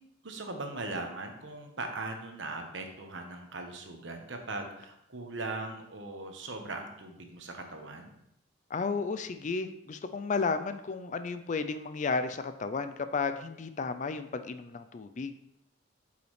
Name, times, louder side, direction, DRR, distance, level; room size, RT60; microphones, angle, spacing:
voice 1, 0.2-8.2, right 2 dB, 65° right, 4 dB, 1.1 m, -39 dB
voice 2, 8.7-15.3, left 4 dB, 40° left, 10 dB, 0.4 m, -33 dB
8.3 x 5.6 x 3.2 m, 0.79 s
head